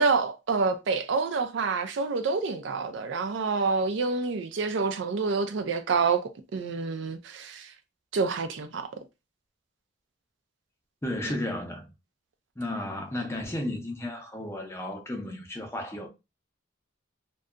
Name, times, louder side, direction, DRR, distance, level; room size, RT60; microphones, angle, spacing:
voice 1, 0.0-7.7 8.1-8.9, right 4 dB, 60° right, 0.4 m, -27 dB
voice 2, 11.0-11.9 12.6-16.1, left 1 dB, 15° left, 0.5 m, -33 dB
2.7 x 2.2 x 2.4 m
head